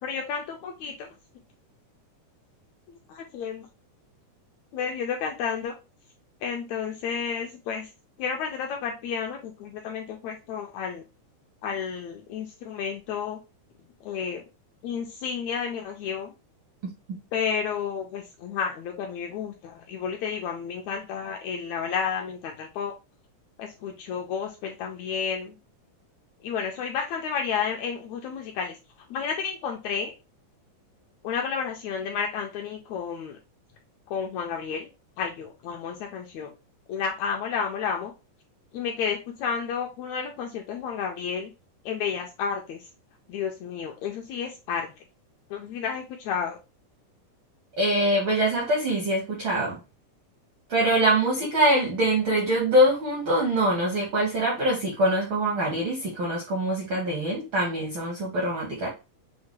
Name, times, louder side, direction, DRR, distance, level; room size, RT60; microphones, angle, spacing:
voice 1, 0.0-1.1 2.9-3.7 4.7-5.7 6.4-7.9 8.2-11.0 11.6-13.4 14.0-14.4 14.8-16.3 17.3-22.9 23.6-25.6 26.4-28.8 29.1-30.1 31.2-33.4 34.1-34.9 35.2-36.5 36.9-38.1 38.7-41.5 41.8-42.9 43.3-44.9 45.5-46.6, left 6 dB, 80° left, 1.7 m, -31 dB
voice 2, 16.8-17.2 47.8-49.8 50.7-58.9, right 1 dB, 70° right, 1.1 m, -24 dB
6.4 x 2.2 x 3.0 m
omnidirectional pair, 3.7 m